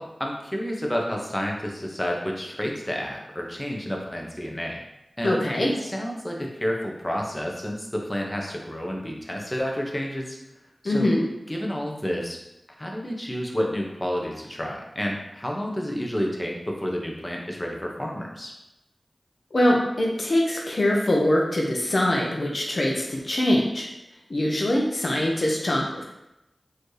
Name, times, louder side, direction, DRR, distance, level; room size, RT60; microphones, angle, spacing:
voice 1, 0.0-4.8 5.2-10.4 10.8-11.1 11.5-12.4 12.8-18.5, equal, 20° left, 0 dB, 0.9 m, -30 dB
voice 2, 5.2-5.7 10.8-11.2 19.5-23.9 24.3-26.0, left 1 dB, 60° left, -2 dB, 0.7 m, -23 dB
4.2 x 2.8 x 3.2 m, 0.91 s
cardioid pair, 45°, 0 cm